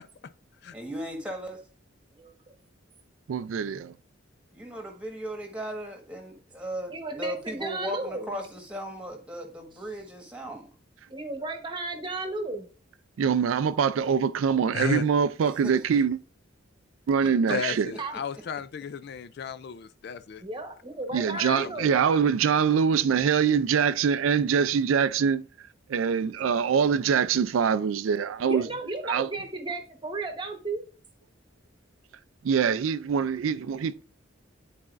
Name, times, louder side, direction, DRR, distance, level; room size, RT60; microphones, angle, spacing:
voice 1, 0.7-1.6 4.5-10.7 15.6-15.7 17.2-17.5, right 1 dB, 5° right, 1.4 m, -37 dB
voice 2, 2.1-2.6 6.9-8.3 11.1-12.7 18.0-18.1 20.4-22.0 28.5-30.8, right 2 dB, 25° right, 1.0 m, -34 dB
voice 3, 3.3-3.9 13.2-16.2 17.1-17.9 21.1-25.4 25.9-28.7 29.0-29.3 32.4-34.0, right 6 dB, 85° right, 0.4 m, -24 dB
voice 4, 14.7-15.0 17.5-20.4 21.4-21.6 21.9-22.0, left 6 dB, 55° left, 0.3 m, -34 dB
10.5 x 4.2 x 2.5 m
head